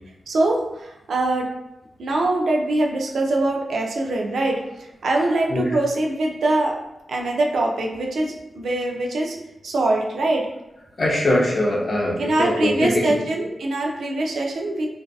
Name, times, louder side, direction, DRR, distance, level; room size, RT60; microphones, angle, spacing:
voice 1, 0.3-1.5 2.0-6.8 7.1-9.4 9.6-10.5 12.2-14.9, right 2 dB, 80° right, 0 dB, 0.4 m, -23 dB
voice 2, 11.0-13.2, left 1 dB, 35° left, -2 dB, 0.5 m, -22 dB
2.6 x 2.3 x 2.2 m, 0.92 s
wide cardioid pair, 170°, 0 cm